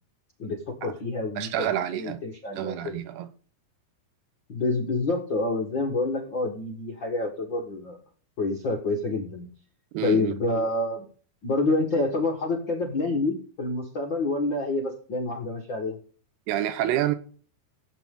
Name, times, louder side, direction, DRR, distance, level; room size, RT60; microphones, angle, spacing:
voice 1, 0.4-2.9 4.5-8.0 8.4-9.5 10.0-11.1 11.4-16.0, left 2 dB, 55° left, 1.3 m, -28 dB
voice 2, 1.4-2.2 2.6-3.3 9.9-10.3 16.5-17.2, right 11 dB, 80° right, 2.9 m, -28 dB
15.5 x 8.2 x 3.8 m
omnidirectional pair, 4.6 m